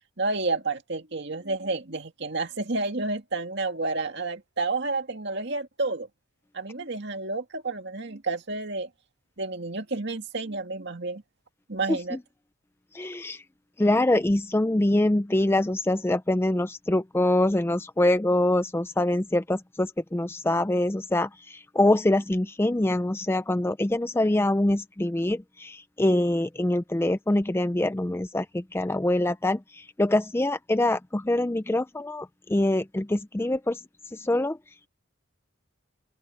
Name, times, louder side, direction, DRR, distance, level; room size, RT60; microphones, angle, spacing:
voice 1, 0.2-6.1 6.5-8.9 9.4-11.2 11.7-12.2, right 3 dB, 55° right, 2.2 m, -30 dB
voice 2, 11.9-12.2 12.9-13.4 13.8-33.8 34.1-34.6, left 1 dB, 10° left, 0.4 m, -24 dB
open air
head